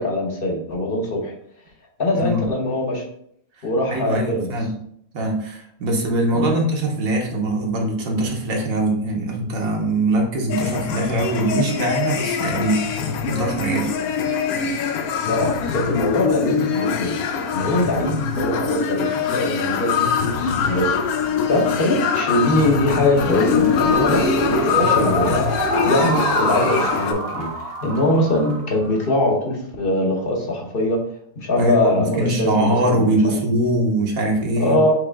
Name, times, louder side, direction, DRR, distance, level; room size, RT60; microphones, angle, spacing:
voice 1, 0.0-1.3 2.0-3.0 3.6-4.5 6.3-6.5 15.2-21.0 21.5-27.5 27.8-31.0 31.4-33.3 34.6-34.9, left 1 dB, 45° left, 0 dB, 0.9 m, -22 dB
voice 2, 2.1-2.5 3.9-4.8 5.1-12.9 13.3-13.9 31.6-34.8, right 1 dB, 70° right, 0 dB, 1.4 m, -22 dB
sound 1, 10.5-27.1, left 6 dB, 80° left, 1.1 m, -23 dB
sound 2, 23.2-29.1, right 1 dB, 45° right, 1.0 m, -25 dB
4.9 x 3.0 x 3.4 m, 0.69 s
omnidirectional pair, 1.6 m